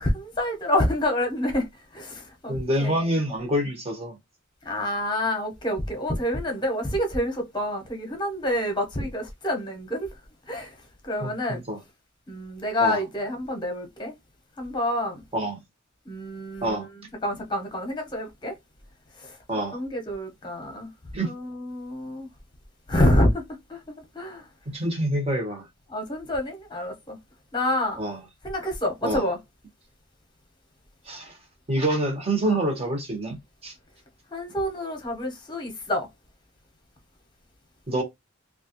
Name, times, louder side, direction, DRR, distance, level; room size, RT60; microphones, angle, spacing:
voice 1, 0.0-1.7 1.9-2.5 2.8-3.1 4.6-10.1 10.5-10.7 11.0-11.6 12.3-14.2 14.6-15.2 16.1-16.8 17.2-18.5 19.2-19.3 19.7-20.9 21.2-22.3 22.9-23.4 23.7-24.4 25.9-27.2 27.5-28.0 28.4-29.4 32.4-32.6 34.3-36.1, left 1 dB, 20° left, 1.0 m, -27 dB
voice 2, 2.5-4.1 11.2-11.8 12.8-13.0 15.3-15.6 16.6-16.9 19.5-19.8 21.1-21.3 24.7-25.7 28.0-28.2 29.0-29.3 31.1-31.4 31.7-33.4 33.6-33.7 37.9-38.0, right 1 dB, 30° right, 1.1 m, -26 dB
3.2 x 2.4 x 2.9 m
head